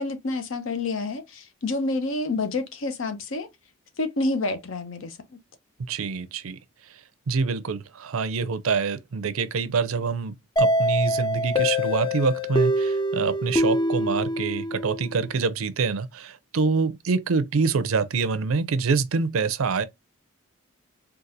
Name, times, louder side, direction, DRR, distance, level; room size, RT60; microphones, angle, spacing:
voice 1, 0.0-3.5 4.0-5.4, left 2 dB, 65° left, 0.7 m, -28 dB
voice 2, 5.9-6.6 6.9-7.0 7.3-19.8, right 4 dB, 75° right, 0.5 m, -26 dB
sound 1, 10.6-15.2, equal, 20° left, 0.4 m, -24 dB
3.9 x 2.4 x 2.7 m
head